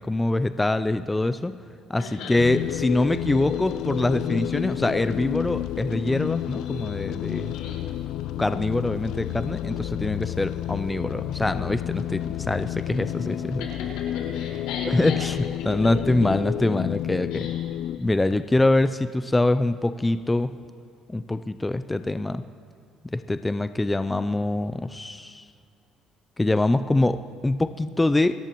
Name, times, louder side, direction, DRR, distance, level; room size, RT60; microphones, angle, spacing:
voice 1, 0.0-1.5 1.9-7.5 8.4-13.6 14.9-17.5 18.0-20.5 21.1-22.4 23.0-25.4 26.4-28.3, left 2 dB, 10° left, 11 dB, 0.4 m, -24 dB
voice 2, 2.0-2.4 7.3-7.9 13.6-15.2 17.3-17.6, left 5 dB, 90° left, -2 dB, 4.6 m, -38 dB
sound 1, 2.4-18.0, left 12 dB, 70° left, 0.4 m, -30 dB
27.5 x 14.0 x 3.0 m, 2.4 s
cardioid pair, 130°, 0 cm